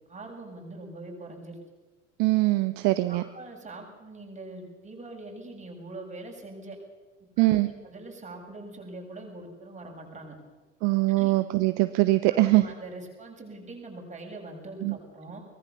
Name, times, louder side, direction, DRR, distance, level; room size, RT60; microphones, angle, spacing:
voice 1, 0.1-1.6 2.8-6.8 7.4-10.3 11.2-11.3 12.3-15.4, right 2 dB, 20° right, 1 dB, 6.7 m, -43 dB
voice 2, 2.2-3.2 7.4-7.7 10.8-12.7 14.8-15.0, right 19 dB, 50° right, 13 dB, 1.0 m, -22 dB
23.5 x 20.0 x 7.0 m, 1.3 s
figure-of-eight pair, 70°, 37 cm